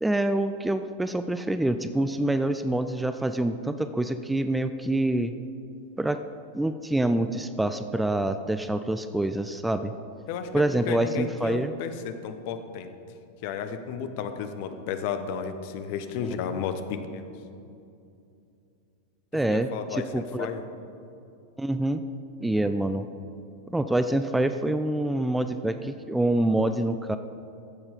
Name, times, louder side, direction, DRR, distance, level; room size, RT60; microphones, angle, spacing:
voice 1, 0.0-5.3 6.0-6.2 6.5-9.9 10.5-11.7 19.3-20.5 21.6-22.0 22.4-23.1 23.7-27.2, right 1 dB, 5° right, 10 dB, 0.4 m, -26 dB
voice 2, 10.3-12.9 13.4-17.3 19.5-20.6, left 7 dB, 45° left, 9 dB, 0.8 m, -33 dB
14.0 x 7.2 x 4.9 m, 2.6 s
figure-of-eight pair, 90°, 0 cm